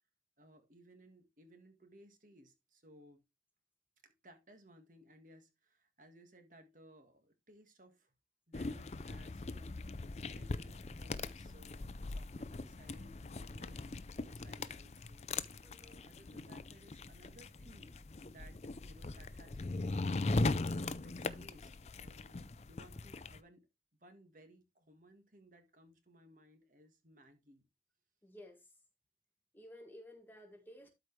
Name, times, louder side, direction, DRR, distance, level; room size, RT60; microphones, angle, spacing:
voice 1, 0.4-3.2 4.0-8.1 8.5-9.8 10.3-18.0 18.2-21.7 22.0-23.7 24.0-27.7, equal, 45° right, 1.7 m, -61 dB
sound 1, 8.5-23.4, left 2 dB, 40° left, 0.5 m, -40 dB
voice 2, 15.6-16.0 28.2-28.7 29.5-30.9, equal, 10° left, 1.6 m, -55 dB
12.5 x 4.9 x 3.2 m
head